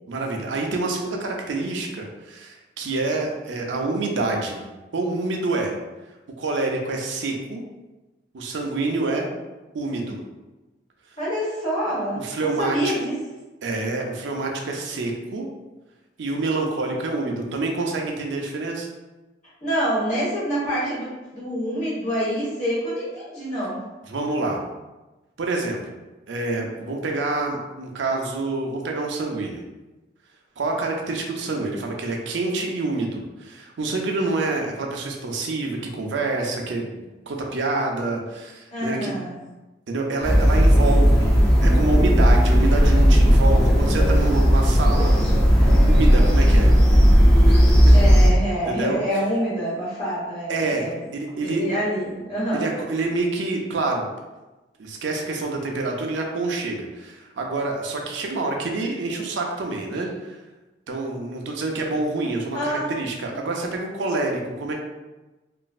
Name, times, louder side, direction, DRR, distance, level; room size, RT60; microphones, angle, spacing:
voice 1, 0.1-4.6 4.9-5.7 6.4-7.6 8.3-9.3 9.7-10.2 12.1-12.9 13.6-15.5 16.2-18.9 24.1-24.6 25.4-25.9 26.3-29.6 30.6-39.1 39.9-45.2 45.8-46.7 47.5-47.9 48.7-49.0 50.5-51.6 52.5-54.1 54.8-60.4 60.9-64.7, right 3 dB, 85° right, 1 dB, 0.5 m, -27 dB
voice 2, 11.2-13.2 19.6-23.8 38.7-39.3 47.9-51.1 51.4-52.7 62.5-62.9, equal, 40° left, -8 dB, 1.3 m, -26 dB
sound 1, 40.2-48.3, equal, 5° left, 0.5 m, -15 dB
3.0 x 2.5 x 2.4 m, 1.1 s
head